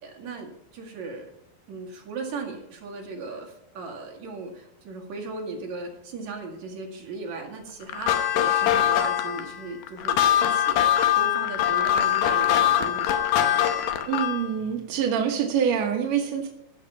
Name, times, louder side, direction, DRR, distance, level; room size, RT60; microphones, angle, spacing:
voice 1, 0.0-1.3 1.7-10.8 11.1-13.8, right 3 dB, 50° right, 0 dB, 2.9 m, -37 dB
sound 1, 7.9-14.5, left 11 dB, 80° left, 1.9 m, -22 dB
voice 2, 14.1-16.5, right 8 dB, 70° right, 2 dB, 1.7 m, -25 dB
16.0 x 6.6 x 5.6 m, 0.81 s
omnidirectional pair, 5.1 m